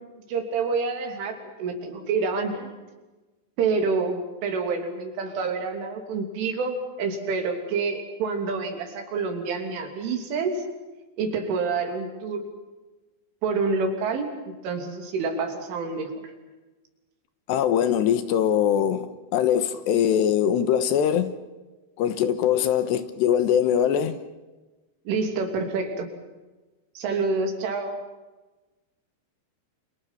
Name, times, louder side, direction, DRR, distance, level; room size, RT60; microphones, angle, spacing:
voice 1, 0.3-2.7 3.6-10.6 11.2-12.5 13.4-14.3 14.6-16.1 25.1-26.1 27.0-28.0, right 4 dB, 90° right, 5.6 m, -27 dB
voice 2, 17.5-21.4 22.0-24.2, left 9 dB, 75° left, 3.1 m, -22 dB
29.5 x 27.0 x 5.9 m
omnidirectional pair, 5.4 m